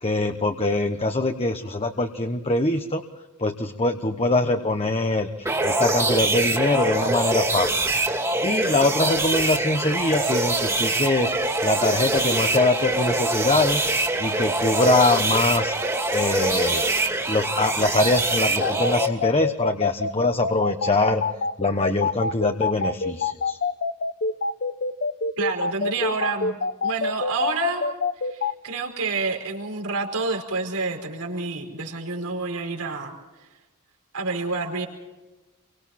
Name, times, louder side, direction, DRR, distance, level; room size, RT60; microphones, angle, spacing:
voice 1, 0.0-3.0 3.4-7.8 8.4-11.3 11.6-13.9 14.2-15.7 16.1-16.8 17.3-21.2 21.6-23.6, left 2 dB, 25° left, 6 dB, 1.1 m, -23 dB
sound 1, 5.4-19.1, right 2 dB, 15° right, 2.4 m, -24 dB
sound 2, 18.6-28.5, left 4 dB, 45° left, 0.8 m, -25 dB
voice 2, 25.4-27.8 28.3-33.1 34.1-34.9, right 4 dB, 85° right, 1 dB, 4.8 m, -28 dB
29.5 x 24.5 x 4.3 m, 1.1 s
head